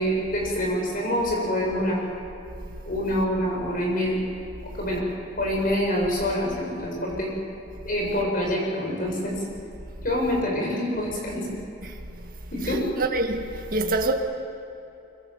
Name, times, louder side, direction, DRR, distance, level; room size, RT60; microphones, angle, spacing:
voice 1, 0.0-2.0 2.9-4.2 4.6-5.0 5.4-7.3 7.8-9.4 10.0-11.5 12.5-12.8, equal, 45° left, 7.6 m, -26 dB
voice 2, 13.0-13.4 13.7-14.1, right 2 dB, 45° right, 2.1 m, -24 dB
25.0 x 24.5 x 7.5 m
head